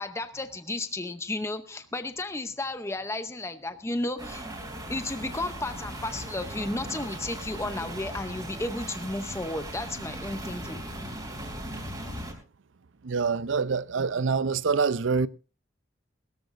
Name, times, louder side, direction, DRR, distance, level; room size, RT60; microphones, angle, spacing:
voice 1, 0.0-4.5 4.9-10.8, left 2 dB, 15° left, 0.7 m, -33 dB
sound 1, 4.2-12.3, right 1 dB, 20° right, 3.7 m, -38 dB
voice 2, 13.0-15.3, right 5 dB, 80° right, 0.6 m, -25 dB
21.0 x 13.5 x 2.6 m
head